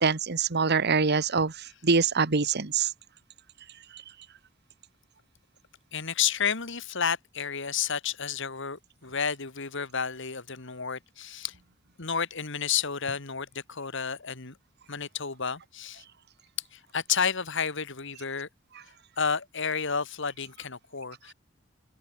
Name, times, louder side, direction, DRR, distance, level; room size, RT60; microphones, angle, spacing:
voice 1, 0.0-1.5 1.8-2.9, right 5 dB, 55° right, 1.3 m, -24 dB
voice 2, 5.9-11.5 12.0-14.6 14.9-16.0 16.7-18.5 19.2-21.3, left 7 dB, 65° left, 2.3 m, -31 dB
open air
head